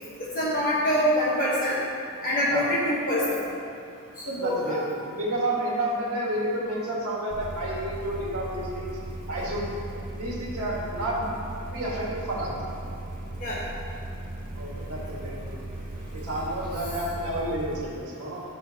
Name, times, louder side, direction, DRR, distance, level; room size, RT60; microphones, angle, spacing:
voice 1, 0.2-1.8 2.2-3.4 4.3-4.8 13.4-13.7, equal, 40° left, -7 dB, 1.1 m, -25 dB
voice 2, 4.4-8.9 9.3-9.7 10.1-12.5 14.6-15.6 16.1-18.4, right 1 dB, 90° right, -4 dB, 1.8 m, -30 dB
sound 1, 7.3-17.9, right 1 dB, 40° right, 0.5 m, -37 dB
10.5 x 6.1 x 2.8 m, 2.4 s
head